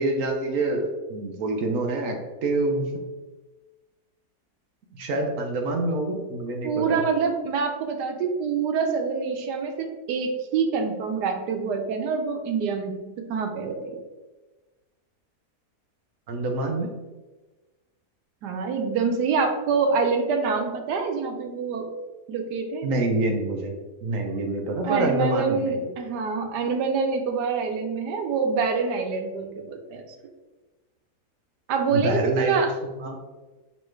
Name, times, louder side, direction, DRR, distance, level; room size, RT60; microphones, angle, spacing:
voice 1, 0.0-2.8 4.9-7.0 16.3-16.9 22.8-23.7 24.0-25.9 31.9-33.2, right 2 dB, 65° right, 3 dB, 0.9 m, -26 dB
voice 2, 6.6-14.0 18.4-21.9 22.3-22.9 24.8-30.0 31.7-32.7, right 5 dB, 90° right, 5 dB, 1.3 m, -26 dB
5.4 x 3.1 x 3.2 m, 1.2 s
omnidirectional pair, 1.7 m